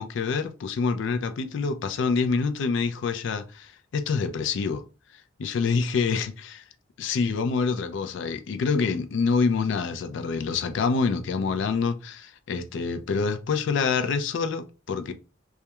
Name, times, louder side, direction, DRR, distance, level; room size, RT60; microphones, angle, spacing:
voice 1, 0.0-4.8 5.4-6.6 7.0-15.1, left 5 dB, 65° left, 0.3 m, -26 dB
2.2 x 2.1 x 2.8 m
head